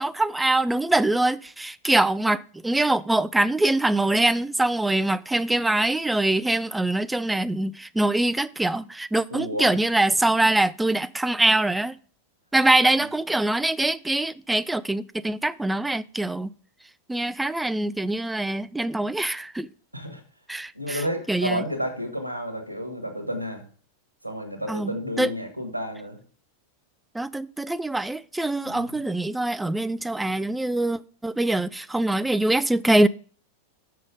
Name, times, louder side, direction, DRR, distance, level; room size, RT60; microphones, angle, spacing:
voice 1, 0.0-12.0 12.5-16.5 17.1-19.7 20.5-21.0 21.3-21.6 24.7-25.3 27.1-33.1, right 2 dB, 5° right, 0.3 m, -23 dB
voice 2, 9.3-9.8 13.0-13.1 19.9-20.2 20.7-23.6 24.2-26.2 28.6-29.0, equal, 85° right, 1.5 m, -31 dB
6.4 x 6.2 x 5.1 m
figure-of-eight pair, 90°, 0 cm